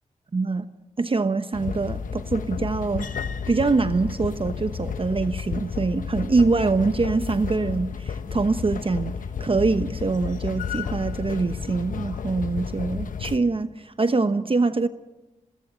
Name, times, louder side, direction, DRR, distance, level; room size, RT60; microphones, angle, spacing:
voice 1, 0.3-0.6 1.0-3.1 3.5-14.9, right 3 dB, 40° right, 11 dB, 1.0 m, -24 dB
sound 1, 1.5-13.4, left 6 dB, 75° left, 1.1 m, -32 dB
23.5 x 20.0 x 7.7 m, 1.1 s
supercardioid pair, 40°, 14 cm